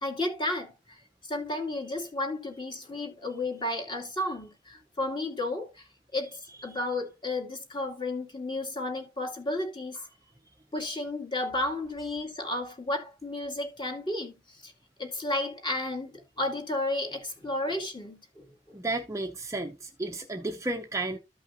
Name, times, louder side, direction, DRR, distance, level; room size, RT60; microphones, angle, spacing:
voice 1, 0.0-10.1 10.7-14.7 15.0-18.8, left 2 dB, 25° left, 2.2 m, -33 dB
voice 2, 18.7-21.2, right 2 dB, 15° right, 0.6 m, -33 dB
14.0 x 5.6 x 2.6 m
head